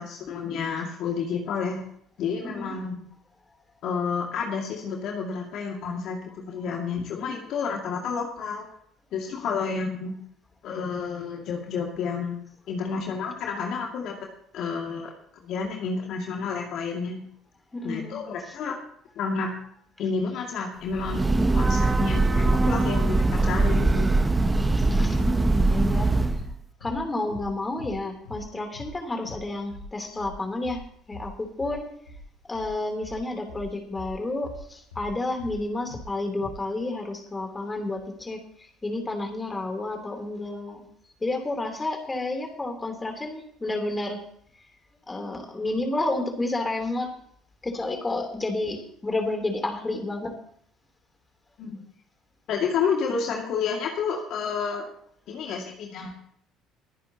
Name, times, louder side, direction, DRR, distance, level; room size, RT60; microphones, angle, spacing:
voice 1, 0.0-1.8 2.2-3.0 3.8-8.7 9.1-10.1 10.6-12.4 12.7-14.3 14.5-15.1 15.4-17.2 17.8-18.8 19.2-19.5 20.0-24.1 51.6-51.8 52.5-54.9 55.3-56.1, left 5 dB, 60° left, 0 dB, 2.3 m, -30 dB
voice 2, 17.7-18.2 24.3-24.5 24.8-26.4 26.8-30.8 31.1-31.9 32.5-40.9 41.2-44.2 45.1-47.1 47.6-50.3, left 2 dB, 20° left, 4 dB, 3.4 m, -30 dB
Breathing / Train, 20.9-26.5, right 2 dB, 20° right, 0.8 m, -22 dB
sound 1, 26.3-27.5 27.8-28.0 28.3-28.5 28.7-29.0 29.2-29.4 29.7-35.1 35.4-36.1 36.4-36.6, left 2 dB, 85° left, 2.5 m, -41 dB
22.0 x 10.0 x 3.0 m, 0.66 s
hypercardioid pair, 60°, 0 cm